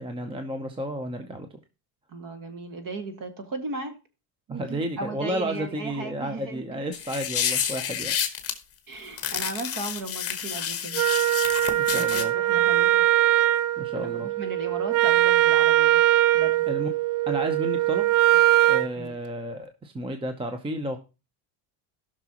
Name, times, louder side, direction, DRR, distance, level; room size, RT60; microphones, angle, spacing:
voice 1, 0.0-1.6 4.5-8.1 11.8-12.3 13.8-14.3 16.7-16.9 17.3-18.2 18.7-21.0, right 1 dB, 10° right, 7 dB, 0.6 m, -32 dB
voice 2, 2.1-3.9 4.5-6.8 8.9-11.0 11.7-13.0 13.9-16.0 16.3-16.7 19.0-19.1, right 3 dB, 40° right, 7 dB, 2.0 m, -36 dB
sound 1, 6.9-8.5 9.2-12.2, left 8 dB, 30° left, 1.4 m, -29 dB
Wind instrument woodwind instrument, 10.9-18.9, right 14 dB, 70° right, 0.7 m, -21 dB
17.5 x 6.1 x 2.9 m, 0.29 s
cardioid pair, 140°, 49 cm